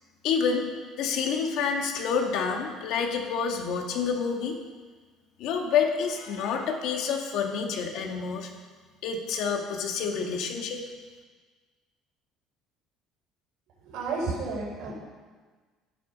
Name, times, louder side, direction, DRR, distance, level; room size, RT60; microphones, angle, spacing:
voice 1, 0.2-0.7 1.0-4.6 5.4-8.5 9.0-10.8, left 6 dB, 65° left, 3 dB, 1.9 m, -28 dB
voice 2, 13.8-14.9, right 3 dB, 65° right, -3 dB, 5.1 m, -31 dB
13.5 x 11.5 x 5.5 m, 1.4 s
cardioid pair, 150°, 0 cm